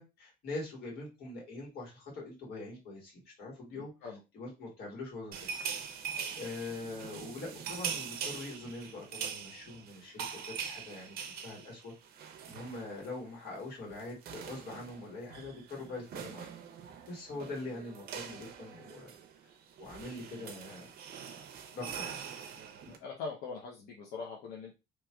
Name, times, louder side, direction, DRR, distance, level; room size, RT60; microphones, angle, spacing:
voice 1, 0.0-3.9 4.3-5.5 5.8-6.1 6.4-11.1 11.4-16.5 17.1-19.1 19.8-20.9 21.7-22.2, left 2 dB, 65° left, -3 dB, 1.9 m, -43 dB
voice 2, 3.7-4.2 22.8-24.7, left 4 dB, 85° left, -2 dB, 0.7 m, -42 dB
sound 1, 5.3-13.2 13.5-13.7 13.9-23.0, right 7 dB, 65° right, 0.6 m, -43 dB
3.0 x 3.0 x 2.3 m, 0.27 s
cardioid pair, 110°, 17 cm